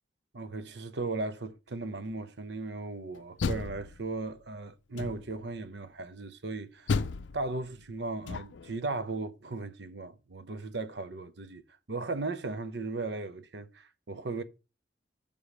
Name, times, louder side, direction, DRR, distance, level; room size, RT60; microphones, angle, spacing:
voice 1, 0.3-7.0 7.3-11.6 11.9-14.4, right 3 dB, 65° right, 0.8 m, -37 dB
Door, 3.1-4.4 4.9-5.5 6.9-8.8, left 4 dB, 75° left, 0.5 m, -34 dB
6.9 x 4.9 x 7.0 m
head